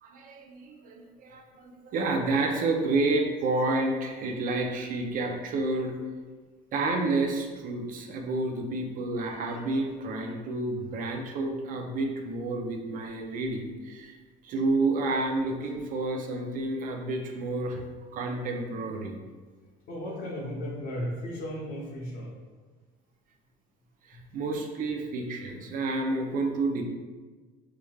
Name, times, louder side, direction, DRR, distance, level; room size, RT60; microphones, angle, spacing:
voice 1, 0.0-6.0 6.7-14.2 14.4-17.8 18.1-19.2 24.1-26.8, right 2 dB, 50° right, 3 dB, 0.6 m, -30 dB
voice 2, 19.9-22.3, equal, 55° left, -3 dB, 0.7 m, -35 dB
4.9 x 3.2 x 2.3 m, 1.4 s
cardioid pair, 135°, 18 cm